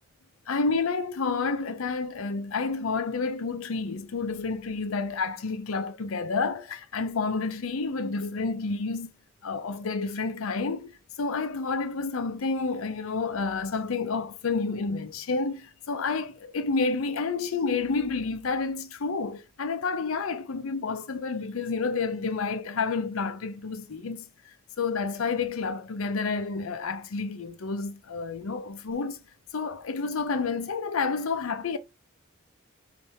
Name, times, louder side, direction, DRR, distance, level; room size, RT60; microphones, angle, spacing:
voice 1, 0.5-9.1 9.4-10.9 11.2-24.3 24.8-29.2 29.5-31.8, left 4 dB, 85° left, 0.6 m, -29 dB
3.3 x 3.2 x 4.2 m
head